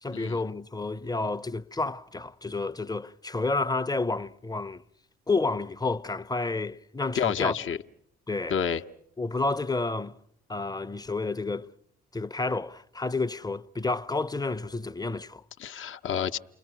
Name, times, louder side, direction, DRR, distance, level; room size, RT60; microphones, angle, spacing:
voice 1, 0.0-4.8 5.3-7.6 8.3-8.6 9.2-10.2 10.5-11.7 12.1-15.4, left 3 dB, 15° left, 0.9 m, -30 dB
voice 2, 7.1-7.8 8.5-8.8 15.6-16.4, left 8 dB, 40° left, 1.0 m, -29 dB
30.0 x 22.5 x 6.2 m
figure-of-eight pair, 45°, 29 cm